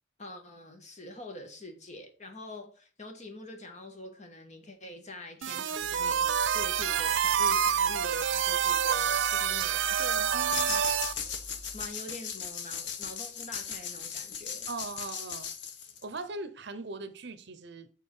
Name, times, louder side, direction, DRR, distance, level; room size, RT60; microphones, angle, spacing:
voice 1, 0.2-10.2 10.6-11.4 11.7-14.7, left 2 dB, 40° left, 1.6 m, -45 dB
sound 1, 5.4-11.1, right 8 dB, 85° right, 0.6 m, -27 dB
sound 2, 5.8-11.9, equal, 10° left, 2.0 m, -49 dB
voice 2, 10.2-10.8 14.7-15.5 16.0-17.9, right 3 dB, 65° right, 0.8 m, -40 dB
sound 3, 10.5-16.2, left 7 dB, 65° left, 1.1 m, -37 dB
7.5 x 4.0 x 5.4 m
head